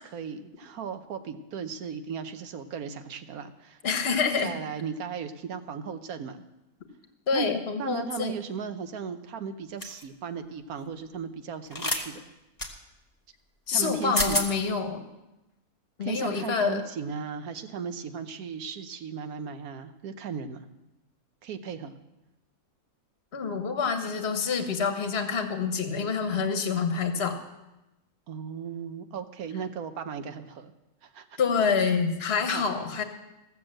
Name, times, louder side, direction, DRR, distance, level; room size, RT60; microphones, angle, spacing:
voice 1, 0.1-3.8 4.4-6.4 7.3-12.3 13.7-14.4 16.0-20.7 21.4-21.9 28.3-30.7 31.0-31.4 32.5-32.6, right 6 dB, 80° right, 9 dB, 1.3 m, -36 dB
voice 2, 3.8-4.5 7.3-8.4 13.7-15.0 16.0-16.8 23.3-27.4 31.4-33.0, left 5 dB, 45° left, 6 dB, 1.4 m, -27 dB
sound 1, 9.8-10.0 11.7-12.0 12.6-12.7 13.8-13.9 14.1-14.5, left 1 dB, 15° left, 1.2 m, -27 dB
15.5 x 7.1 x 7.6 m, 0.96 s
omnidirectional pair, 1.6 m